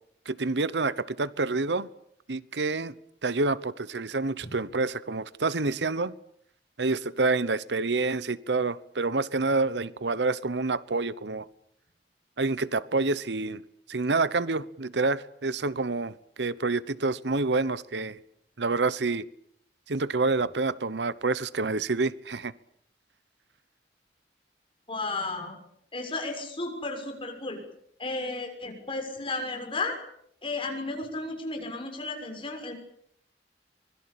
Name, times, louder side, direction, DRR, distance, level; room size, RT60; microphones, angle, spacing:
voice 1, 0.3-1.9 2.3-2.9 3.2-6.1 6.8-11.5 12.4-13.6 13.9-18.2 18.6-19.3 19.9-22.5, right 3 dB, 75° right, 1.0 m, -28 dB
voice 2, 24.9-25.5 25.9-27.6 28.0-30.0 30.4-32.7, left 3 dB, 30° left, 6.5 m, -33 dB
25.0 x 21.5 x 8.6 m
head